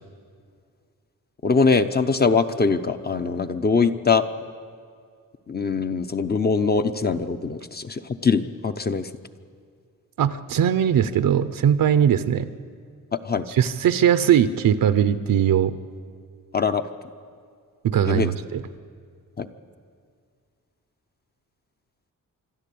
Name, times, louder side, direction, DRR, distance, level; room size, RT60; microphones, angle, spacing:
voice 1, 1.4-4.2 5.5-9.1 13.1-13.5 16.5-16.9 18.1-18.3 19.4-19.5, left 4 dB, 30° left, 9 dB, 0.7 m, -22 dB
voice 2, 10.2-12.5 13.6-15.7 17.8-18.6, right 9 dB, 90° right, 12 dB, 0.7 m, -20 dB
26.0 x 12.5 x 8.5 m, 2.1 s
wide cardioid pair, 175°, 33 cm